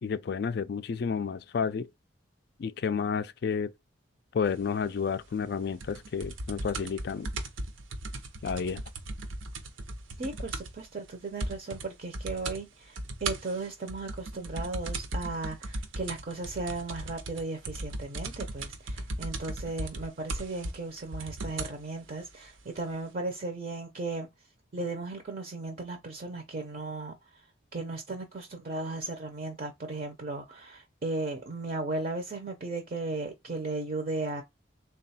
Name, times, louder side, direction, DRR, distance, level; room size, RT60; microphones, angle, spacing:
voice 1, 0.0-1.9 2.6-3.7 4.3-7.3 8.4-8.8, left 6 dB, 55° left, 0.3 m, -31 dB
sound 1, 5.8-10.8 11.1-11.2 11.4-11.9 12.1-12.6 13.0-21.8 22.6-22.7, right 2 dB, 80° right, 0.7 m, -37 dB
voice 2, 10.2-24.3 24.7-27.2 27.7-34.4, right 3 dB, 45° right, 0.5 m, -36 dB
3.6 x 2.3 x 4.1 m
head